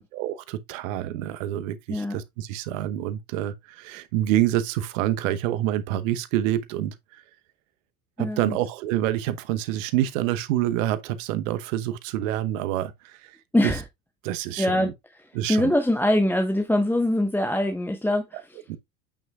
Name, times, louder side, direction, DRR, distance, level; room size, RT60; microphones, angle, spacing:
voice 1, 0.1-6.9 8.2-12.9 13.6-13.7 14.2-14.9 15.3-15.7 18.7-18.8, right 13 dB, 65° right, 1.0 m, -27 dB
voice 2, 8.2-8.6 13.5-13.8 14.6-15.2 15.5-18.6, left 1 dB, 5° left, 1.1 m, -23 dB
8.6 x 6.1 x 2.3 m
hypercardioid pair, 70°, 42 cm